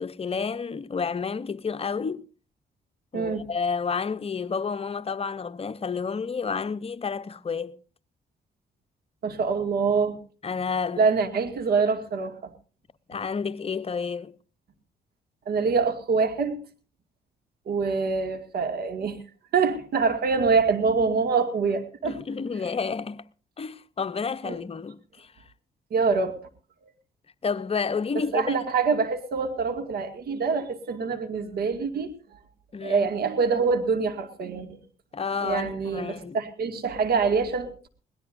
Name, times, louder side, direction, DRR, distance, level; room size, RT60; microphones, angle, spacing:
voice 1, 0.0-2.2 3.1-7.8 10.4-11.0 13.1-14.3 22.0-23.2 23.6-25.3 27.4-28.6 32.7-33.1 35.1-36.4, left 5 dB, 35° left, 0.8 m, -30 dB
voice 2, 3.1-3.5 9.2-10.2 11.0-12.5 15.5-16.6 17.7-19.2 19.5-22.2 24.4-24.6 25.9-26.4 28.3-32.1 32.8-34.8 35.4-37.9, right 5 dB, 70° right, 2.2 m, -25 dB
21.5 x 18.0 x 2.6 m
supercardioid pair, 65°, 17 cm